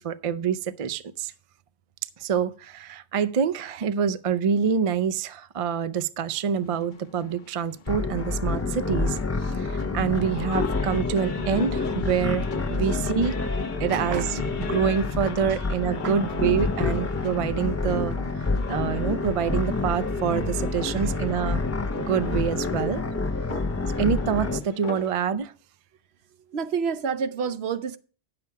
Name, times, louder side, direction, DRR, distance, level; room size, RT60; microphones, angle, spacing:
voice 1, 0.0-1.3 2.2-13.3 13.8-14.4 14.7-21.6 22.0-23.0 24.0-25.5, right 7 dB, 45° right, 0.5 m, -26 dB
sound 1, 6.3-25.2, left 6 dB, 50° left, 0.8 m, -41 dB
sound 2, 7.9-24.6, left 3 dB, 20° left, 0.4 m, -28 dB
voice 2, 13.9-14.4 15.5-15.6 16.0-16.2 20.6-21.2 23.5-23.9 26.5-28.0, right 6 dB, 70° right, 0.9 m, -31 dB
9.5 x 6.9 x 4.6 m
omnidirectional pair, 1.1 m